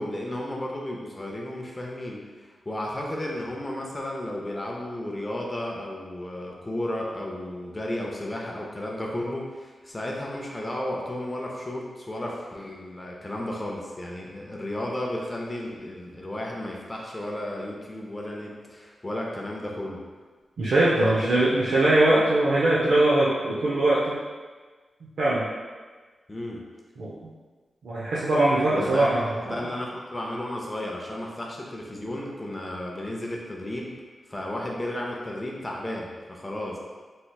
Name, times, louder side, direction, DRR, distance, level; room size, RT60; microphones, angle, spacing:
voice 1, 0.0-20.0 21.2-21.3 26.3-26.6 28.7-34.0 34.3-36.8, left 1 dB, 20° left, -2 dB, 0.5 m, -33 dB
voice 2, 20.6-24.2 25.2-25.5 27.0-27.1 27.8-29.6, right 2 dB, 85° right, -8 dB, 0.5 m, -21 dB
3.2 x 2.9 x 2.3 m, 1.4 s
wide cardioid pair, 150°, 0 cm